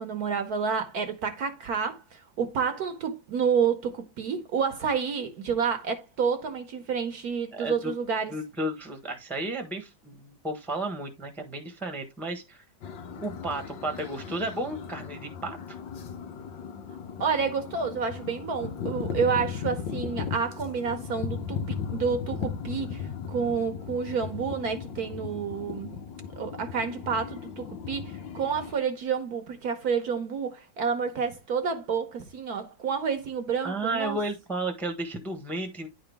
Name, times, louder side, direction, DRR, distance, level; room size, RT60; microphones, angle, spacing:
voice 1, 0.0-8.3 17.2-26.0 26.4-34.2, right 6 dB, 60° right, 1.3 m, -29 dB
voice 2, 7.5-7.9 8.3-12.6 13.2-15.8 33.6-35.9, right 2 dB, ahead, 1.0 m, -33 dB
sound 1, 12.8-28.7, left 7 dB, 90° left, 1.7 m, -37 dB
10.0 x 3.9 x 3.4 m
omnidirectional pair, 2.0 m